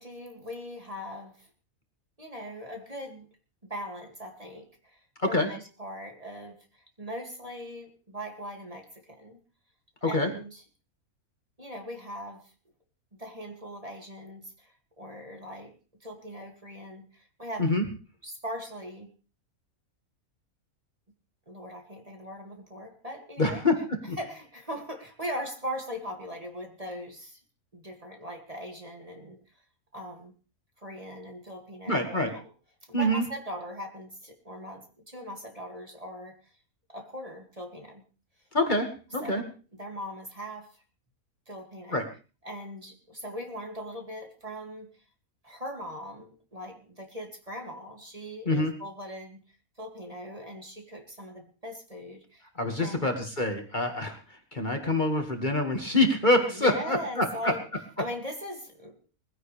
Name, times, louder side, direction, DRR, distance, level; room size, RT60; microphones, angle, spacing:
voice 1, 0.0-1.5 2.2-3.3 3.7-5.0 5.3-9.4 10.1-10.6 11.6-12.5 13.2-15.8 16.0-17.7 18.2-19.1 21.5-23.6 24.2-27.4 27.7-29.4 29.9-30.3 30.8-32.4 32.9-36.4 36.9-38.0 39.2-39.5 39.8-40.8 41.5-42.1 42.4-44.9 45.4-49.4 49.8-52.5 52.8-53.1 56.4-57.6 58.0-59.0, equal, 25° right, 2 dB, 2.4 m, -40 dB
voice 2, 23.4-24.2 31.9-32.3 32.9-33.2 38.5-39.4 41.9-42.0 48.5-48.7 52.6-57.5, left 1 dB, 30° left, 3 dB, 2.0 m, -26 dB
21.0 x 15.5 x 3.3 m, 0.36 s
omnidirectional pair, 1.5 m